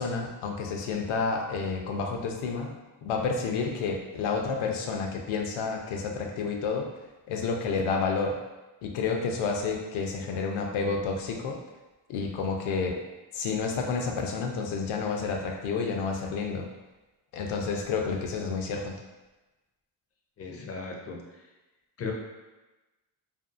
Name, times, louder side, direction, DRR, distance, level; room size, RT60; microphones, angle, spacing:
voice 1, 0.0-2.7 3.0-6.9 7.3-8.3 8.8-11.6 12.1-13.0 13.3-16.7 17.3-19.0, left 4 dB, 75° left, 1 dB, 0.6 m, -30 dB
voice 2, 20.4-21.2 22.0-22.1, left 5 dB, 30° left, 1 dB, 0.5 m, -36 dB
2.6 x 2.4 x 2.4 m, 1.1 s
cardioid pair, 100°, 49 cm